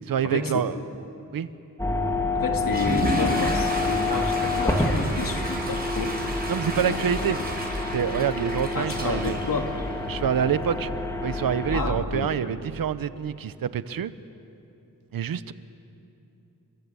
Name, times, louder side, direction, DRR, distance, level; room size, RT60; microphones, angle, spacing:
voice 1, 0.0-0.8 1.3-1.5 6.5-7.4 7.9-9.4 10.1-10.9 11.2-14.1 15.1-15.5, right 8 dB, 85° right, 14 dB, 1.0 m, -26 dB
sound 1, 1.8-11.7, left 2 dB, 10° left, 2.8 m, -28 dB
voice 2, 2.3-6.2 6.8-7.0 8.7-9.7 11.7-12.4, left 4 dB, 70° left, 3 dB, 2.5 m, -31 dB
Water / Toilet flush, 2.6-10.4, right 1 dB, 25° right, 5.3 m, -32 dB
30.0 x 22.0 x 8.4 m, 2.9 s
wide cardioid pair, 125°, 34 cm